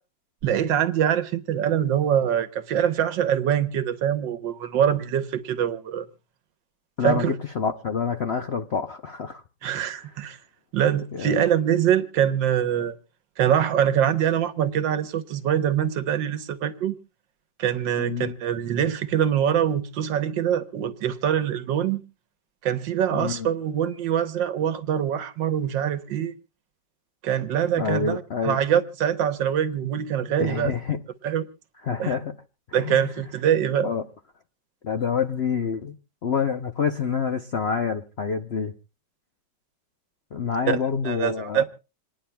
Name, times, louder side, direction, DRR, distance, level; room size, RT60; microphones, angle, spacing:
voice 1, 0.4-6.1 7.0-7.3 9.6-10.4 10.7-13.0 13.4-16.9 17.6-22.0 22.6-26.3 27.2-30.7 31.2-31.5 32.0-32.1 32.7-33.9 40.7-40.8 41.0-41.6, right 9 dB, 80° right, 1.6 m, -24 dB
voice 2, 7.0-9.4 9.7-10.2 11.1-11.4 18.0-18.3 23.1-23.5 27.8-28.6 30.4-31.0 31.8-32.3 32.7-33.1 33.8-34.0 34.8-35.9 36.2-38.7 40.3-41.6, left 6 dB, 60° left, 0.6 m, -27 dB
28.0 x 10.0 x 2.2 m
omnidirectional pair, 2.0 m